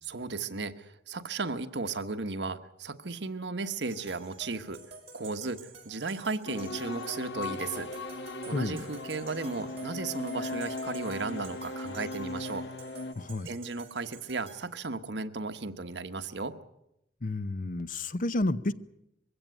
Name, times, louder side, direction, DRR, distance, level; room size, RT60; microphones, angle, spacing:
voice 1, 0.0-4.8 5.1-7.9 8.5-12.7 13.4-16.5, right 3 dB, 70° right, 1.2 m, -35 dB
sound 1, 3.9-14.6, right 4 dB, 35° right, 4.5 m, -50 dB
sound 2, 6.5-13.1, left 2 dB, 75° left, 1.2 m, -38 dB
voice 2, 8.5-8.8 13.2-13.5 17.2-18.7, left 2 dB, 50° left, 0.8 m, -30 dB
22.0 x 16.0 x 9.3 m
head